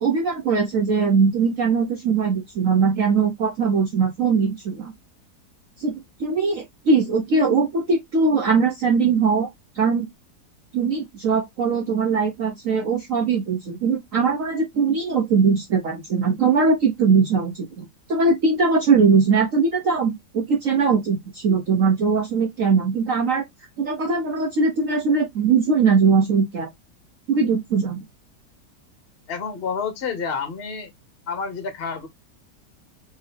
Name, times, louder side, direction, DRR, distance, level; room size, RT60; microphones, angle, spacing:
voice 1, 0.0-4.9 5.8-5.9 6.2-9.5 9.7-10.1 10.7-23.4 23.8-26.7 27.3-28.0, right 5 dB, 55° right, 1.1 m, -20 dB
voice 2, 29.3-30.9 31.3-32.1, left 5 dB, 45° left, 0.8 m, -29 dB
4.3 x 3.1 x 3.3 m
omnidirectional pair, 1.9 m